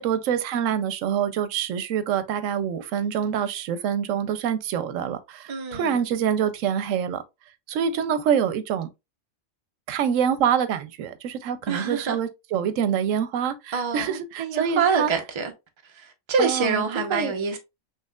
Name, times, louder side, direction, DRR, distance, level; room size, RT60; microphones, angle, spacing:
voice 1, 0.0-7.2 7.7-8.9 9.9-15.1 16.4-16.8 17.1-17.3, right 8 dB, 90° right, 1.0 m, -26 dB
voice 2, 5.5-6.0 11.7-12.2 13.7-15.5 16.3-17.6, right 5 dB, 30° right, 0.6 m, -25 dB
5.6 x 2.9 x 2.3 m
omnidirectional pair, 1.3 m